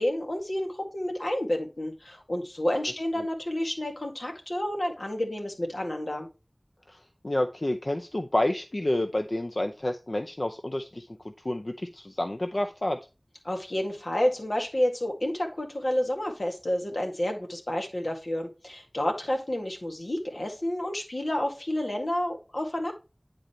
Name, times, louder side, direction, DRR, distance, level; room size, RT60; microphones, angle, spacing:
voice 1, 0.0-6.3 13.4-22.9, left 1 dB, 85° left, 3 dB, 1.9 m, -30 dB
voice 2, 7.2-13.0, left 1 dB, 60° left, 5 dB, 0.6 m, -29 dB
9.8 x 3.9 x 4.3 m, 0.29 s
wide cardioid pair, 40°, 0 cm